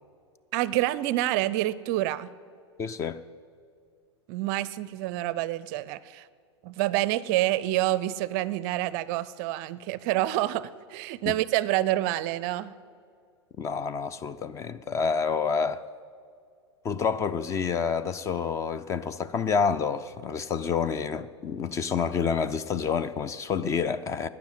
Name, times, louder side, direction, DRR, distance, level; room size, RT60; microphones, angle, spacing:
voice 1, 0.5-2.3 4.3-6.3 6.6-12.7, right 15 dB, 40° right, 0.5 m, -27 dB
voice 2, 2.8-3.2 11.3-11.4 13.6-15.8 16.8-24.3, left 6 dB, 20° left, 0.4 m, -28 dB
12.5 x 9.5 x 9.1 m
figure-of-eight pair, 95°, 15 cm